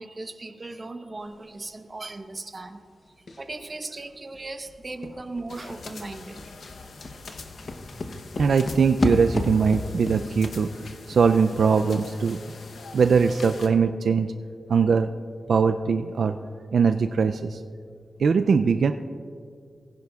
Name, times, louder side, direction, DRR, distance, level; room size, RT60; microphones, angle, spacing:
voice 1, 0.0-2.8 3.4-6.4, right 2 dB, 35° right, 6 dB, 0.8 m, -37 dB
sound 1, 3.3-3.6 4.0-4.1 4.3-12.1 12.3-12.4, left 3 dB, 50° left, 0.8 m, -34 dB
sound 2, 5.5-13.7, left 4 dB, 80° left, 0.8 m, -44 dB
voice 2, 8.4-10.7 11.1-12.4 12.9-14.3 14.7-15.1 15.5-16.4 16.7-17.6 18.2-18.9, right 5 dB, 70° right, 9 dB, 0.3 m, -21 dB
19.5 x 10.5 x 2.4 m, 2.3 s
wide cardioid pair, 120°, 0 cm